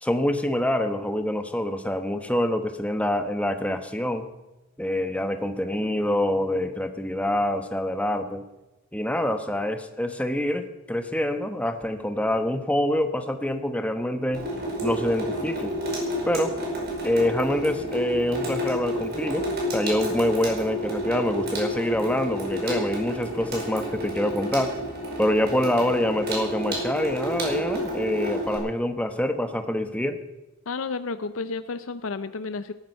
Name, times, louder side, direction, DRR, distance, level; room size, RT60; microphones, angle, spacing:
voice 1, 0.0-4.3 4.8-8.4 8.9-14.4 14.8-15.7 16.2-16.5 17.0-19.4 19.7-24.7 25.2-30.2, left 1 dB, 5° left, 7 dB, 1.1 m, -26 dB
Water tap faucet / Sink (filling or washing), 14.3-28.6, equal, 50° right, 5.2 m, -30 dB
voice 2, 30.7-32.7, left 4 dB, 70° left, 12 dB, 0.6 m, -31 dB
18.0 x 12.5 x 5.6 m, 1.0 s
head